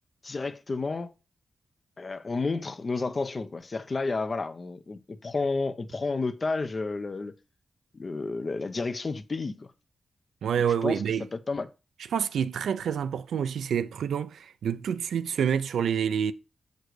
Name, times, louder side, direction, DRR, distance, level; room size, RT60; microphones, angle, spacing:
voice 1, 0.2-1.1 2.0-7.3 7.9-9.7 10.8-11.0 11.3-11.7, left 3 dB, 50° left, 0.7 m, -31 dB
voice 2, 10.4-11.3 12.1-16.3, right 8 dB, 85° right, 0.4 m, -27 dB
6.6 x 6.5 x 3.2 m
supercardioid pair, 45°, 0 cm